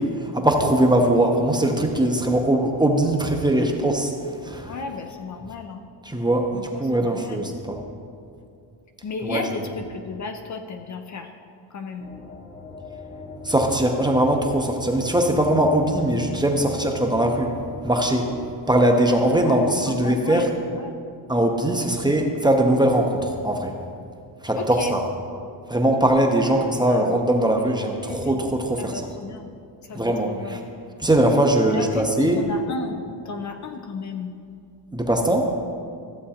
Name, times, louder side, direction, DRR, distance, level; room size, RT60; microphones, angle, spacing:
voice 1, 0.0-4.1 4.4-4.7 6.0-7.8 9.2-9.4 13.4-17.5 17.8-18.3 18.7-20.5 21.3-23.7 24.4-25.0 25.7-29.0 29.9-30.6 31.0-32.4 34.9-35.5, right 1 dB, 10° right, 2 dB, 0.7 m, -21 dB
voice 2, 4.7-5.8 6.5-6.7 7.0-7.5 9.0-11.3 11.7-12.1 19.4-20.5 20.7-20.9 24.5-25.0 26.8-27.2 28.1-28.4 28.8-29.5 29.9-30.6 31.7-34.3, left 4 dB, 40° left, 5 dB, 0.6 m, -33 dB
sound 1, 12.0-18.5, left 1 dB, 25° left, 0.9 m, -39 dB
14.0 x 7.5 x 2.8 m, 2.4 s
cardioid pair, 115°, 45 cm